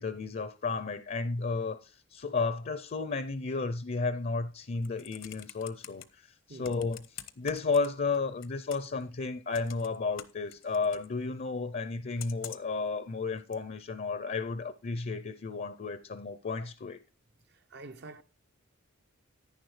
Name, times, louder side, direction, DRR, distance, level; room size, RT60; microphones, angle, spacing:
voice 1, 0.0-7.0 7.4-17.0, left 4 dB, 50° left, 0.5 m, -33 dB
Computer keyboard, 4.6-6.0 6.6-8.2 8.4-9.0 9.5-11.1 12.2-12.8 13.5-13.6, left 10 dB, 75° left, 0.8 m, -46 dB
voice 2, 17.5-18.2, right 3 dB, 60° right, 0.7 m, -47 dB
10.5 x 9.8 x 3.2 m
head